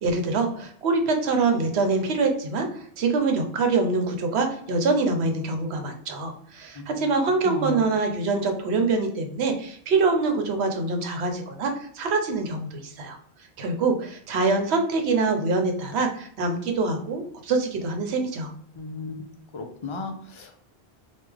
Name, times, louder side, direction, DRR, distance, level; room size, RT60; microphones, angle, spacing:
voice 1, 0.0-13.2 13.6-18.5, right 3 dB, 80° right, 5 dB, 0.9 m, -25 dB
voice 2, 7.4-7.9 18.8-19.3 19.5-20.6, left 2 dB, 50° left, 4 dB, 0.3 m, -34 dB
3.4 x 2.3 x 3.3 m, 0.63 s
omnidirectional pair, 1.1 m